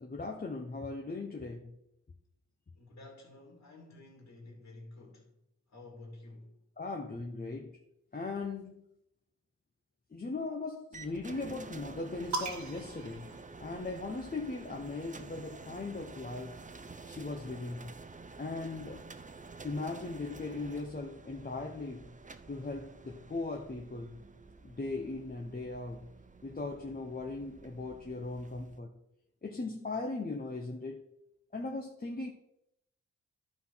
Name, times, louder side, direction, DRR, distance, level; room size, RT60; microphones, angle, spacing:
voice 1, 0.0-1.7 6.8-7.7 8.1-8.8 10.1-16.5 17.1-17.9 18.4-19.0 19.6-22.1 22.5-24.2 24.6-26.1 26.4-28.9 29.4-31.0 31.5-32.3, left 3 dB, 30° left, 1.1 m, -39 dB
voice 2, 2.7-5.3 5.7-6.6, left 2 dB, 65° left, 2.5 m, -51 dB
sound 1, 10.9-28.8, right 3 dB, 25° right, 0.7 m, -50 dB
sound 2, 12.3-14.1 15.2-16.9, right 3 dB, 70° right, 1.5 m, -42 dB
11.5 x 4.2 x 5.7 m
cardioid pair, 65°, 30 cm